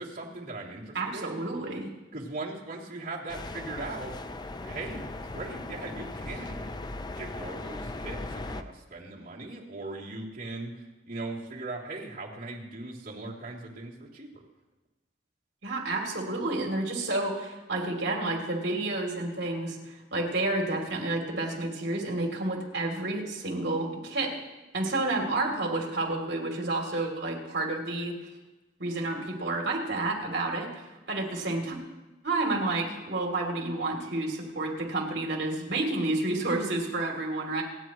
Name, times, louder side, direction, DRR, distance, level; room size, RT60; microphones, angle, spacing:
voice 1, 0.0-1.4 2.1-4.1 4.6-6.7 7.1-14.4, right 2 dB, 50° right, -5 dB, 3.1 m, -39 dB
voice 2, 0.9-1.9 15.6-24.4 24.7-28.2 28.8-31.8 32.2-37.6, right 2 dB, 70° right, 0 dB, 3.1 m, -30 dB
sound 1, 3.3-8.6, left 2 dB, 25° left, 0.5 m, -38 dB
28.5 x 9.6 x 3.1 m, 1.1 s
head